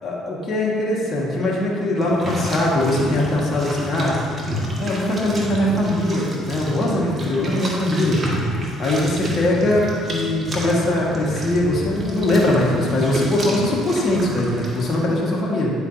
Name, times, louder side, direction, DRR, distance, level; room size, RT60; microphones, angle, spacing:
voice 1, 0.0-4.2 4.8-8.2 8.8-15.7, left 1 dB, 40° left, -4 dB, 1.7 m, -21 dB
sound 1, 2.0-15.0, right 1 dB, 30° right, 1.5 m, -30 dB
9.6 x 5.0 x 2.8 m, 2.3 s
supercardioid pair, 70°, 0 cm